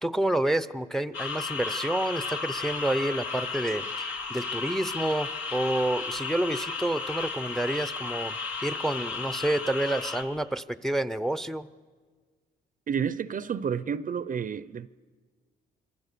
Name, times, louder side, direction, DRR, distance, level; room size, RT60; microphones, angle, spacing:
voice 1, 0.0-8.4 8.6-11.7, right 1 dB, ahead, 0.7 m, -29 dB
sound 1, 1.1-10.2, left 4 dB, 85° left, 3.0 m, -34 dB
voice 2, 12.9-14.9, right 7 dB, 40° right, 0.6 m, -30 dB
26.5 x 23.5 x 6.8 m
cardioid pair, 90°, 20 cm